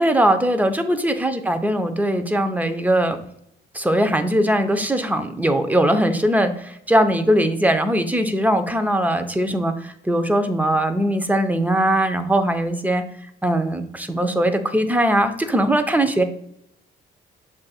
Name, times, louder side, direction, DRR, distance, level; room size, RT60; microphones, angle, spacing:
voice 1, 0.0-3.2 3.7-13.0 13.4-16.2, right 1 dB, 10° right, 7 dB, 0.5 m, -20 dB
7.3 x 2.6 x 2.3 m, 0.74 s
cardioid pair, 90°, 20 cm